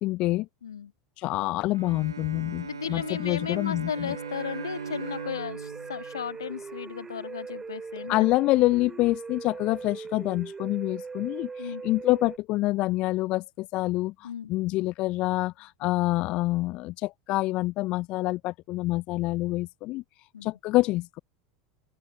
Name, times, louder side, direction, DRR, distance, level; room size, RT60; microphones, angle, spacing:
voice 1, 0.0-0.5 1.2-4.1 8.1-20.0 20.4-21.2, left 19 dB, 45° left, 0.4 m, -27 dB
Bowed string instrument, 1.7-7.1, right 6 dB, 80° right, 1.9 m, -40 dB
voice 2, 2.6-8.2 11.6-11.8 14.2-14.5 20.3-20.5, left 8 dB, 75° left, 1.8 m, -35 dB
sound 1, 4.1-12.4, right 5 dB, 20° right, 6.0 m, -40 dB
open air
figure-of-eight pair, 80°, 2 cm